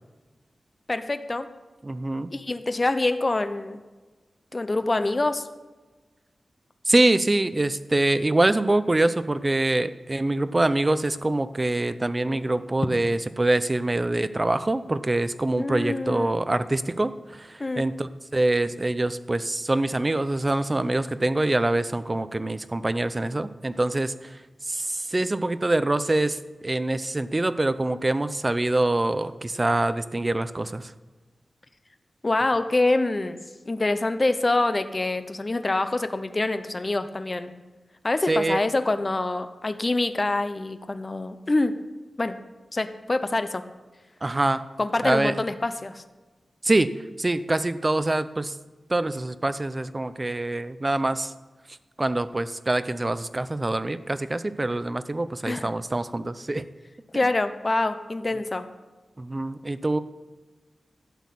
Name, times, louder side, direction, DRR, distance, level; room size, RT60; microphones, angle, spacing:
voice 1, 0.9-1.5 2.3-3.8 4.5-5.5 15.6-16.4 17.6-17.9 32.2-33.4 33.7-37.5 38.0-41.8 42.2-42.4 42.7-43.6 44.8-46.0 55.5-55.7 57.1-58.7, left 2 dB, 30° left, 10 dB, 0.7 m, -25 dB
voice 2, 1.8-2.3 6.9-30.9 38.3-38.6 44.2-44.6 45.0-45.3 46.6-46.9 47.2-48.6 48.9-51.3 52.0-56.6 59.2-60.0, right 2 dB, 25° right, 13 dB, 0.6 m, -25 dB
12.5 x 6.3 x 8.4 m, 1.3 s
wide cardioid pair, 130°, 0 cm